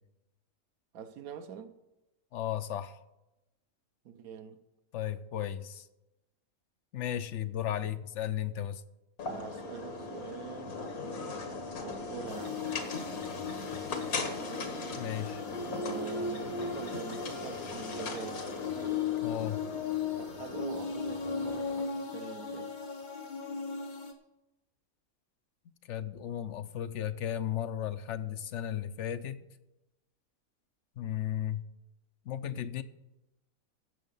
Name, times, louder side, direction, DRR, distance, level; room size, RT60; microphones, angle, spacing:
voice 1, 0.9-1.7 4.0-4.6 7.8-7.9 9.2-10.8 11.8-12.7 13.9-14.4 15.5-18.6 20.1-22.7, right 7 dB, 90° right, 1.3 m, -45 dB
voice 2, 2.3-3.0 4.9-5.9 6.9-8.8 15.0-15.4 19.2-19.6 25.9-29.4 31.0-31.6 32.3-32.8, left 10 dB, 65° left, 0.9 m, -35 dB
sound 1, 9.2-21.8, left 3 dB, 80° left, 1.8 m, -39 dB
sound 2, 12.3-24.1, left 5 dB, 35° left, 1.2 m, -37 dB
16.0 x 6.6 x 5.5 m
omnidirectional pair, 1.5 m